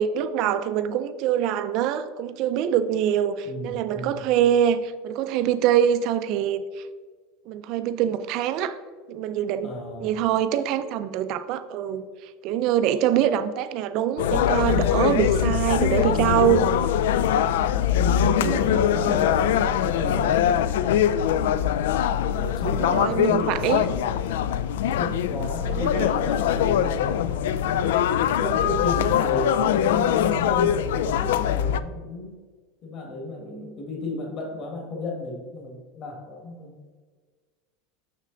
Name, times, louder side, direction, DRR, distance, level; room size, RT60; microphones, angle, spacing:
voice 1, 0.0-6.6 7.5-8.8 9.1-9.7 10.0-12.0 12.4-16.7 22.8-23.9 25.4-26.1, right 10 dB, 40° right, 0.4 m, -24 dB
voice 2, 3.4-4.3 9.6-10.1 17.7-21.3 22.2-23.7 24.8-27.2 27.8-32.4 32.8-36.8, left 1 dB, 30° left, 1.5 m, -33 dB
sound 1, 14.2-31.8, left 9 dB, 85° left, 0.3 m, -22 dB
6.5 x 6.5 x 3.9 m
supercardioid pair, 175°, 0 cm